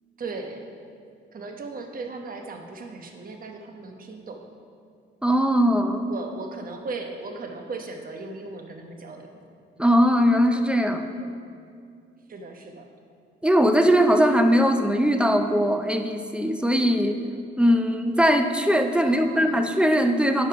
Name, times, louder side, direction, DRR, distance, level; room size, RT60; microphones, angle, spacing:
voice 1, 0.2-0.7 1.3-4.4 6.1-9.4 12.3-12.9 19.0-19.7, right 3 dB, 45° right, 3 dB, 1.1 m, -37 dB
voice 2, 5.2-6.1 9.8-11.1 13.4-17.2 17.6-20.5, equal, 5° right, 6 dB, 0.6 m, -20 dB
10.0 x 5.4 x 4.8 m, 2.4 s
cardioid pair, 90°, 20 cm